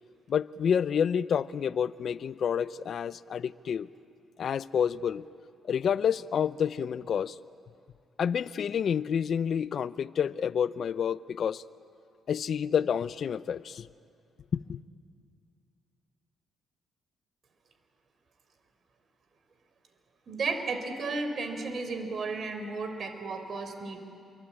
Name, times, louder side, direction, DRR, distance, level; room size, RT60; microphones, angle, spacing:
voice 1, 0.3-3.9 4.4-5.3 5.6-7.4 8.2-11.6 12.3-13.9 14.5-14.8, left 8 dB, 55° left, 0.6 m, -29 dB
voice 2, 20.3-24.0, right 3 dB, 50° right, 4.0 m, -33 dB
28.0 x 24.0 x 8.7 m
cardioid pair, 90°, 0 cm